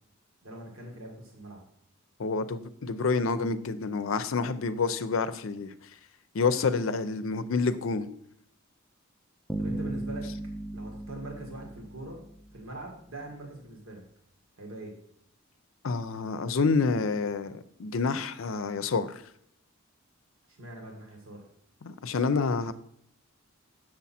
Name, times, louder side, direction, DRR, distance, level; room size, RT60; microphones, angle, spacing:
voice 1, 0.4-1.6 9.6-10.3 10.7-12.2 12.5-14.0 14.6-14.9 20.5-21.4, right 1 dB, 85° right, 1.8 m, -42 dB
voice 2, 2.2-5.7 6.3-8.1 15.8-19.2 21.8-22.7, left 4 dB, 70° left, 0.5 m, -28 dB
Bass guitar, 9.5-12.6, right 1 dB, ahead, 0.4 m, -36 dB
7.2 x 6.3 x 4.2 m
head